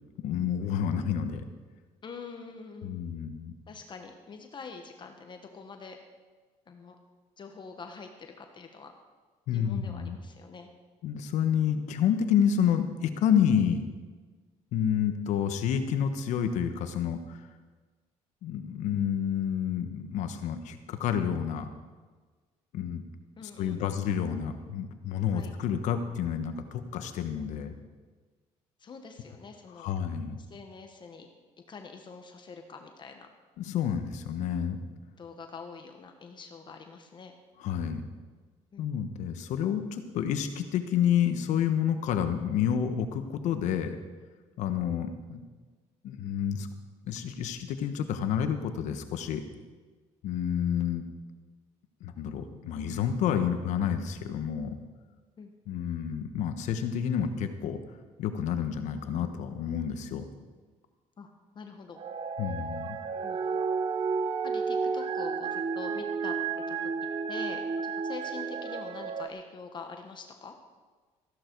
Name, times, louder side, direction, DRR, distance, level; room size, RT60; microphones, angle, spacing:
voice 1, 0.2-1.4 2.8-3.5 9.5-10.2 11.0-13.9 14.7-17.4 18.4-21.7 22.7-23.0 23.4-27.7 29.8-30.4 33.6-34.8 37.6-38.1 38.8-44.0 44.6-45.5 46.0-46.7 47.0-49.4 50.2-51.0 52.0-54.7 55.7-57.8 58.2-60.2 62.4-63.0, left 8 dB, 75° left, 8 dB, 1.3 m, -29 dB
voice 2, 2.0-3.2 3.7-6.0 6.7-7.0 7.4-8.9 9.5-10.7 23.4-24.0 25.3-25.5 28.8-29.9 30.3-31.3 31.7-33.3 35.2-37.3 38.7-39.0 55.4-55.5 61.2-62.0 63.2-63.4 64.4-66.3 66.7-66.9 67.3-70.5, left 5 dB, 40° left, 5 dB, 1.3 m, -45 dB
sound 1, 62.0-69.3, right 5 dB, 45° right, 0.9 m, -32 dB
15.0 x 11.5 x 4.7 m, 1.4 s
cardioid pair, 100°, 12 cm